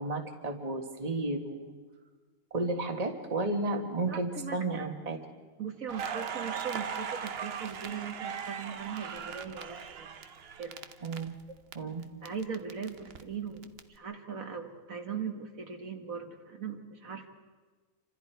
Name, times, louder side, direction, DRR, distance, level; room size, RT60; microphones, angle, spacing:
voice 1, 0.0-1.8 2.5-5.2 11.0-11.3 11.7-12.1, right 2 dB, 25° right, 4 dB, 1.7 m, -32 dB
voice 2, 4.1-4.8 5.6-10.3 10.6-10.8 12.2-17.3, right 6 dB, 70° right, 3 dB, 2.0 m, -39 dB
Crackle, 5.9-11.7 12.0-13.8, right 7 dB, 50° right, 0.9 m, -39 dB
28.5 x 25.5 x 4.6 m, 1.4 s
omnidirectional pair, 1.5 m